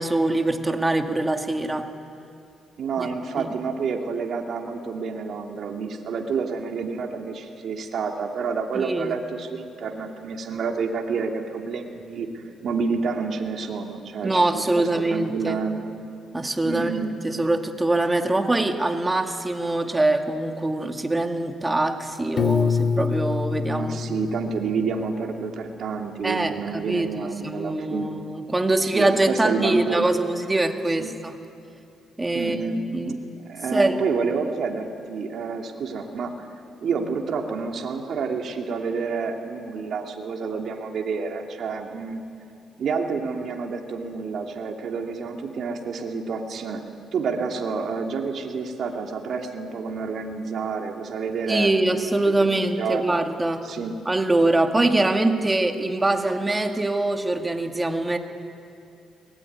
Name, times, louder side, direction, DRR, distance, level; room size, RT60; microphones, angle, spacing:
voice 1, 0.0-1.9 3.0-3.1 3.4-3.6 8.7-9.2 14.2-15.6 16.3-24.0 26.2-31.3 32.2-33.2 33.7-34.0 51.5-53.7 54.1-58.2, right 2 dB, 15° right, 5 dB, 2.0 m, -23 dB
voice 2, 2.8-15.8 16.6-17.2 23.7-28.1 28.8-30.2 31.0-31.1 32.3-36.5 36.8-42.2 42.8-46.8 47.1-53.0 53.6-53.9, right 5 dB, 60° right, 2 dB, 2.8 m, -29 dB
Piano, 22.4-25.3, left 6 dB, 50° left, 2.0 m, -26 dB
23.5 x 21.0 x 9.6 m, 2.7 s
cardioid pair, 90°, 0 cm